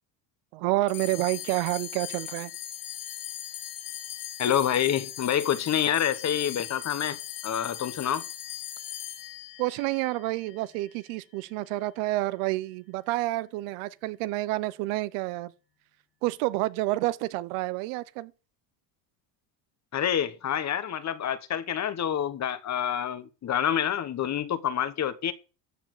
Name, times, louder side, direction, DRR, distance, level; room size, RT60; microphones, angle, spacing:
voice 1, 0.5-2.5 9.6-15.5 16.2-18.3, right 18 dB, 80° right, 1.0 m, -29 dB
sound 1, 0.9-11.5, left 11 dB, 55° left, 3.6 m, -39 dB
voice 2, 4.4-8.3 19.9-25.3, left 9 dB, 35° left, 1.1 m, -27 dB
14.0 x 4.7 x 7.7 m
cardioid pair, 130°, 49 cm